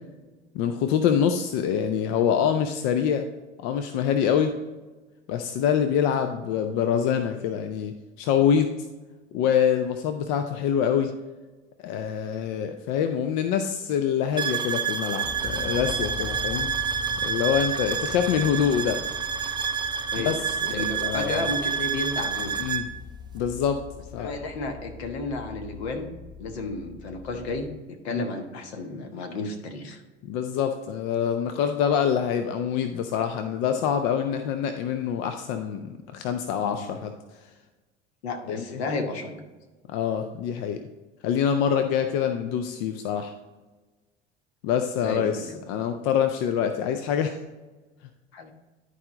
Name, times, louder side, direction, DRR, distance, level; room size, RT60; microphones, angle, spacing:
voice 1, 0.5-3.3 3.6-4.6 5.3-8.8 9.3-11.1 11.8-16.7 17.2-19.0 20.2-20.4 20.7-21.3 22.6-22.9 23.3-23.9 24.1-24.3 28.1-28.2 30.3-37.1 38.5-38.8 39.9-40.8 41.2-43.3 44.6-47.4, left 8 dB, 45° left, 8 dB, 0.6 m, -25 dB
sound 1, 14.4-22.9, right 7 dB, 15° right, 0.4 m, -28 dB
sound 2, 15.2-27.7, left 5 dB, 25° left, 2.8 m, -42 dB
voice 2, 20.7-22.6 24.1-26.1 26.4-30.0 36.6-37.0 38.2-39.4 45.0-45.6 48.3-48.5, left 2 dB, 65° left, 5 dB, 1.3 m, -32 dB
11.0 x 4.9 x 3.8 m, 1.2 s
figure-of-eight pair, 70°, 34 cm